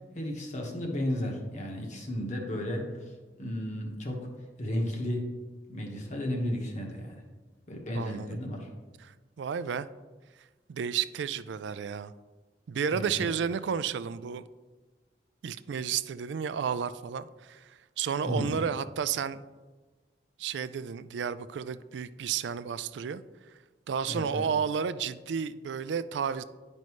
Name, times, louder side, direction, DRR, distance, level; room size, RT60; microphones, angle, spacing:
voice 1, 0.1-3.0 3.4-4.3 4.6-5.3 5.7-7.1 7.7-8.7 12.9-13.3 18.2-18.6 24.1-24.5, equal, 45° left, 1 dB, 1.3 m, -33 dB
voice 2, 7.9-8.4 9.0-9.9 10.7-12.1 12.7-14.4 15.4-19.4 20.4-23.2 23.9-26.4, right 7 dB, 75° right, 14 dB, 0.4 m, -32 dB
10.5 x 5.3 x 3.2 m, 1.3 s
head